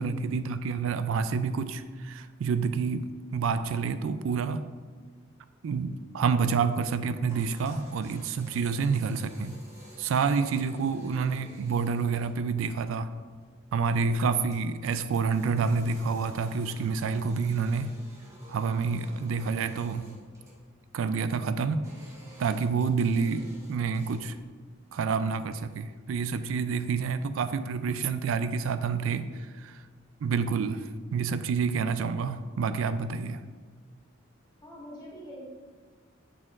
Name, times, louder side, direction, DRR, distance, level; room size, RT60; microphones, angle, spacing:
voice 1, 0.0-4.6 5.6-9.6 10.0-13.1 13.7-17.9 18.5-20.1 20.9-21.8 22.4-24.4 24.9-29.8 30.2-33.4, right 5 dB, 70° right, 12 dB, 0.3 m, -28 dB
sound 1, 7.3-24.5, right 1 dB, 15° right, 1.1 m, -53 dB
voice 2, 34.6-35.5, equal, 20° left, -6 dB, 1.5 m, -46 dB
6.3 x 6.0 x 2.4 m, 1.5 s
head